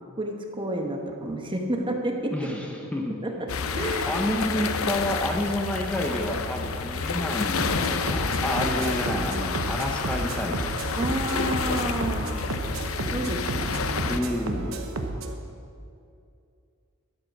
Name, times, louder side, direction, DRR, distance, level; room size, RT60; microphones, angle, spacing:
voice 1, 0.2-2.5 3.2-4.2 11.0-12.4 13.1-14.3, right 1 dB, 25° right, 3 dB, 1.0 m, -30 dB
voice 2, 2.3-3.2 3.7-10.7 14.0-14.7, equal, 5° left, 0 dB, 0.8 m, -30 dB
sound 1, 3.5-14.2, left 5 dB, 85° left, 0.6 m, -29 dB
sound 2, 7.6-15.3, right 2 dB, 75° right, 0.9 m, -32 dB
12.0 x 7.6 x 6.1 m, 2.5 s
head